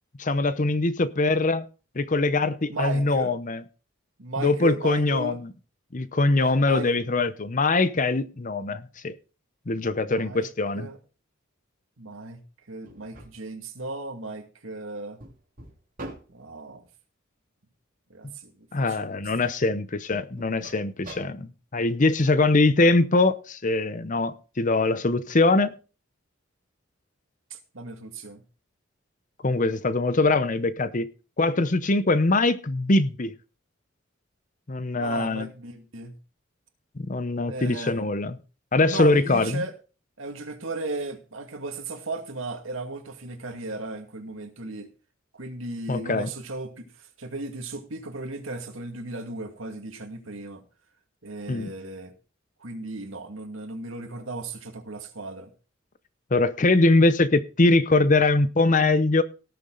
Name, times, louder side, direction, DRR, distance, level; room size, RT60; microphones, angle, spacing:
voice 1, 0.2-1.6 1.9-3.6 4.4-5.4 5.9-9.1 9.7-10.9 18.7-25.7 29.4-31.1 31.4-33.3 34.7-35.5 37.0-38.4 38.7-39.6 45.9-46.3 51.5-51.7 56.3-59.2, left 2 dB, 40° left, 0.7 m, -22 dB
voice 2, 2.7-3.3 4.2-5.4 6.3-7.0 10.0-10.5 10.7-11.0 12.0-12.4 12.7-15.2 16.3-16.8 18.1-19.2 27.5-28.4 35.0-36.2 37.5-38.0 38.9-39.8 40.2-44.9 45.3-50.6 51.2-52.1 52.6-55.5, right 2 dB, 75° right, 2.2 m, -36 dB
sound 1, 12.9-13.3 15.2-16.3 19.2-19.6 20.1-21.2, right 2 dB, 40° right, 2.8 m, -42 dB
18.0 x 6.9 x 3.9 m
head